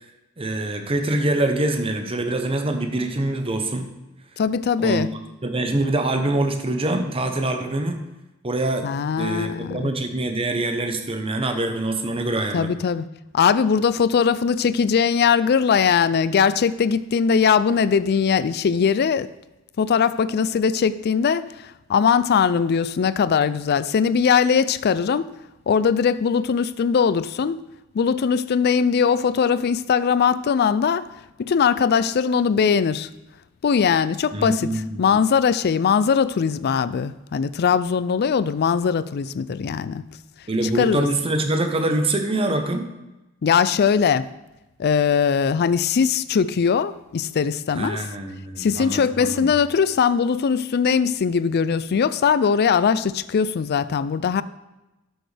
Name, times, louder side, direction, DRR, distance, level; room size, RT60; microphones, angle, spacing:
voice 1, 0.4-3.9 4.8-5.0 5.4-8.0 8.4-8.9 9.2-12.7 34.3-35.2 40.5-42.9 47.7-49.5, right 2 dB, 25° right, 0.8 m, -24 dB
voice 2, 4.4-5.1 8.8-9.9 12.5-13.1 13.3-19.3 19.8-25.3 25.7-27.6 27.9-31.1 31.4-33.1 33.6-34.7 35.0-40.0 40.8-41.1 43.4-44.3 44.8-48.0 48.6-54.4, left 6 dB, 50° left, 0.4 m, -20 dB
12.0 x 6.3 x 3.3 m
head